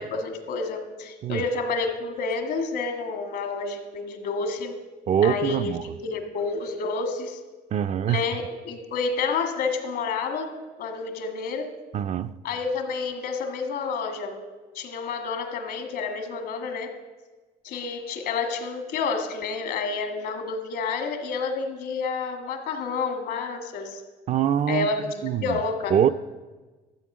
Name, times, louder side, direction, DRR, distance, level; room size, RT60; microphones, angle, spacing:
voice 1, 0.0-4.8 5.2-5.7 6.0-7.4 8.1-10.5 10.8-11.7 12.4-14.4 14.7-16.9 17.6-24.0 24.7-25.9, left 4 dB, 75° left, 1.7 m, -29 dB
voice 2, 5.1-5.8 7.7-8.2 11.9-12.3 24.3-24.9 25.2-25.6 25.9-26.1, right 9 dB, 45° right, 0.4 m, -23 dB
13.0 x 7.8 x 6.0 m
cardioid pair, 110°, 17 cm